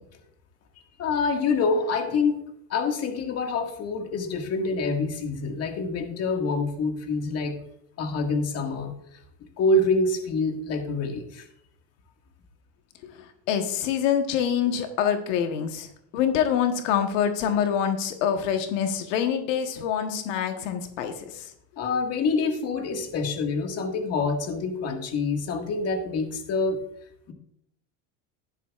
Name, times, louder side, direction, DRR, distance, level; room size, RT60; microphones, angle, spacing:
voice 1, 1.0-2.4 2.7-7.6 8.0-8.9 9.6-11.5 21.8-26.8, left 3 dB, 45° left, 4 dB, 1.8 m, -26 dB
voice 2, 13.5-21.5, left 8 dB, 90° left, 6 dB, 1.2 m, -26 dB
12.5 x 11.0 x 2.4 m, 0.74 s
supercardioid pair, 130°, 36 cm